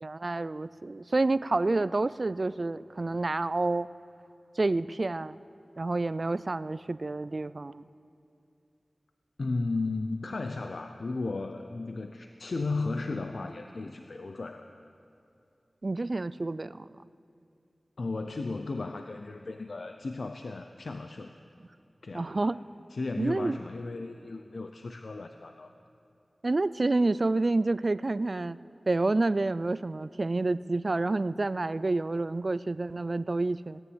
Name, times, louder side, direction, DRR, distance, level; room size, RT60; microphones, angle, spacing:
voice 1, 0.0-3.9 4.6-5.4 5.8-7.8 15.8-16.9 22.1-22.6 23.2-23.6 26.4-28.6 28.9-33.8, right 2 dB, 50° right, 16 dB, 0.4 m, -28 dB
voice 2, 9.4-14.7 18.0-21.3 22.0-22.3 22.9-25.7, left 3 dB, 80° left, 6 dB, 0.6 m, -35 dB
17.0 x 9.9 x 8.0 m, 2.6 s
wide cardioid pair, 50°, 0 cm